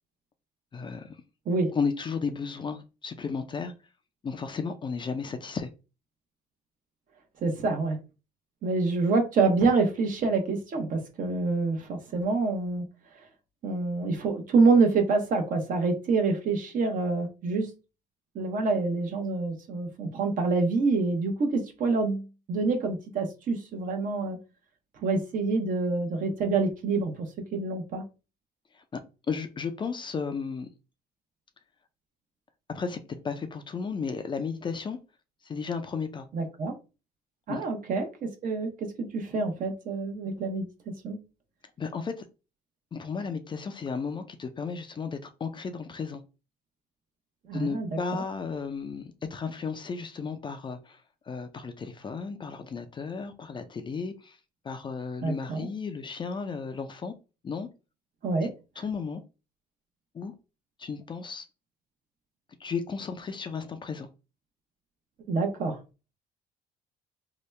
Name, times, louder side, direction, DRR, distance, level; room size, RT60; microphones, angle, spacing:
voice 1, 0.7-1.2 1.7-3.7 4.2-5.7 28.7-29.0 29.3-30.7 32.7-35.0 35.4-36.3 37.5-37.6 41.8-42.3 42.9-46.2 47.5-51.0 51.3-54.4 54.6-57.1 57.4-57.7 58.4-58.5 58.8-59.2 60.1-60.3 60.8-61.5 62.6-64.1, left 5 dB, 30° left, 0.4 m, -34 dB
voice 2, 7.4-8.0 8.6-12.8 13.6-17.7 18.3-24.4 25.0-27.3 27.5-28.0 36.3-36.7 37.5-40.7 41.0-41.2 47.5-48.2 55.2-55.7 58.2-58.5 65.3-65.8, right 3 dB, 50° right, 0.9 m, -26 dB
2.8 x 2.2 x 3.2 m
cardioid pair, 110°, 17 cm